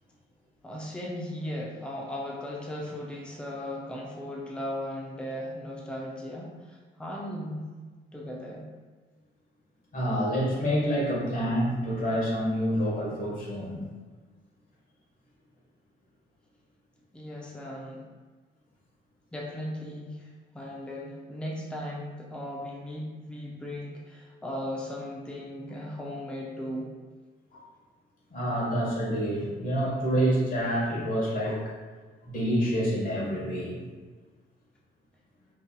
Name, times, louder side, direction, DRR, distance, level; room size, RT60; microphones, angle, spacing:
voice 1, 0.6-7.7 8.1-8.7 17.1-18.1 19.3-26.9, left 1 dB, 5° left, -3 dB, 0.6 m, -37 dB
voice 2, 9.9-13.8 27.5-27.6 28.3-31.7 32.2-33.8, equal, 45° left, -4 dB, 1.4 m, -27 dB
5.2 x 2.6 x 2.3 m, 1.4 s
cardioid pair, 90°, 20 cm